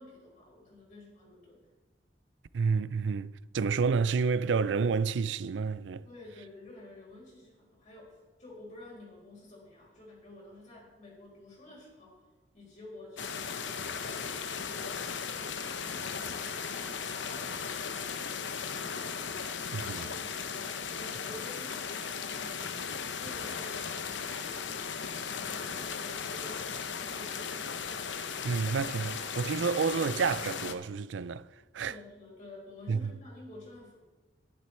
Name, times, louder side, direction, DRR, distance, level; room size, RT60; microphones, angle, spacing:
voice 1, 0.0-1.7 6.0-12.1 12.5-16.4 16.7-19.2 19.6-22.7 23.2-27.8 31.8-34.0, left 2 dB, 45° left, 4.7 m, -51 dB
voice 2, 2.5-6.1 19.7-20.1 28.4-32.0 32.9-33.1, right 5 dB, 80° right, 0.4 m, -30 dB
sound 1, 13.2-30.7, left 6 dB, 85° left, 0.8 m, -37 dB
11.5 x 11.0 x 4.4 m
head